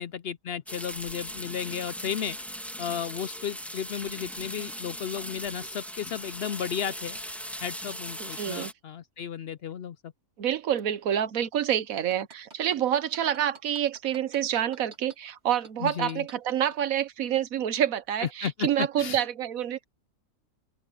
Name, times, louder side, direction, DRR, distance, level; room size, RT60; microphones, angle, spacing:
voice 1, 0.0-2.4 2.8-7.2 7.6-10.1 15.8-16.3 18.2-19.3, left 8 dB, 65° left, 0.6 m, -34 dB
sound 1, 0.7-8.7, equal, ahead, 2.5 m, -39 dB
voice 2, 8.2-8.7 10.4-19.8, right 10 dB, 85° right, 1.3 m, -27 dB
sound 2, 11.9-15.2 15.6-16.8 17.3-17.4, right 3 dB, 50° right, 2.5 m, -48 dB
open air
omnidirectional pair, 1.4 m